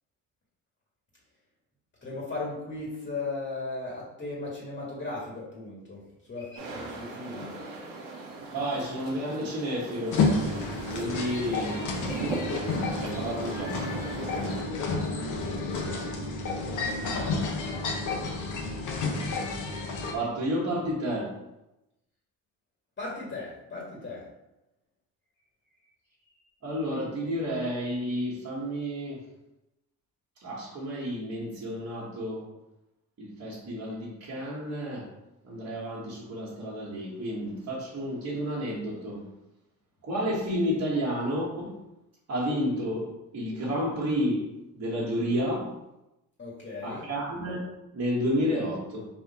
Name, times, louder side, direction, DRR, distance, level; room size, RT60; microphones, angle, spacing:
voice 1, 2.0-7.6 14.9-17.8 23.0-24.3 46.4-47.1, left 3 dB, 35° left, -5 dB, 1.6 m, -38 dB
sound 1, 6.6-14.6, right 3 dB, 75° right, 1.2 m, -38 dB
voice 2, 8.5-12.1 13.0-13.8 20.1-21.4 26.6-29.2 30.4-32.4 33.2-35.1 35.4-39.2 40.0-41.8 42.3-44.5 44.7-45.7 46.8-47.6 47.9-49.1, equal, 45° right, -7 dB, 1.4 m, -31 dB
sound 2, 10.1-20.1, left 3 dB, 60° left, 0.8 m, -30 dB
4.1 x 2.7 x 4.1 m, 0.92 s
cardioid pair, 85°, 34 cm